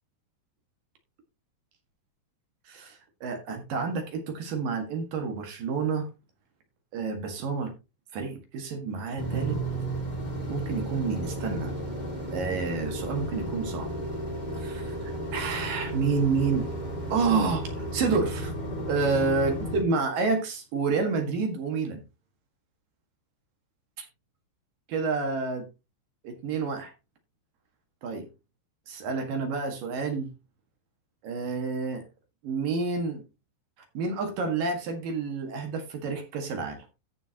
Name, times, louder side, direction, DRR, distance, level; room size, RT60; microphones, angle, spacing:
voice 1, 2.7-6.1 6.9-7.7 8.1-9.6 10.5-11.7 12.3-13.9 14.5-16.7 17.1-18.5 18.9-22.0 24.0-24.1 24.9-25.7 26.2-26.9 28.0-28.3 28.9-30.3 31.2-32.0 32.4-33.2 33.9-36.8, right 4 dB, 55° right, 5 dB, 2.8 m, -29 dB
sound 1, 9.2-19.8, right 1 dB, 30° left, 0.8 m, -33 dB
15.0 x 6.8 x 2.9 m, 0.26 s
omnidirectional pair, 5.6 m